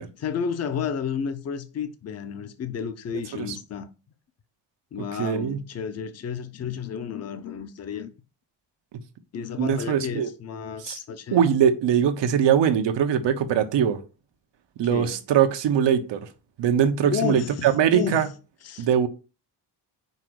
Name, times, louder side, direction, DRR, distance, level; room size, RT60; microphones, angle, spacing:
voice 1, 0.0-3.9 4.9-8.1 9.3-11.4 14.9-15.2 17.1-18.3 18.6-18.9, left 7 dB, 35° left, 0.7 m, -31 dB
voice 2, 5.2-5.6 9.6-10.3 10.8-11.0 11.3-14.0 14.8-16.2 16.6-18.3 18.8-19.1, right 8 dB, 85° right, 1.2 m, -21 dB
5.4 x 5.1 x 6.3 m
wide cardioid pair, 175°, 42 cm